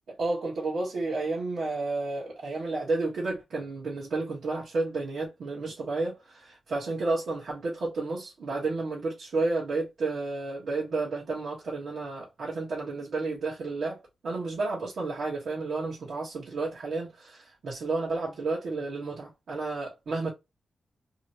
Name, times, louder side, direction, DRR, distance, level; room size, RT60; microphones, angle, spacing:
voice 1, 0.1-20.3, right 3 dB, 75° right, 1.3 m, -31 dB
2.9 x 2.8 x 2.9 m
cardioid pair, 60°, 0 cm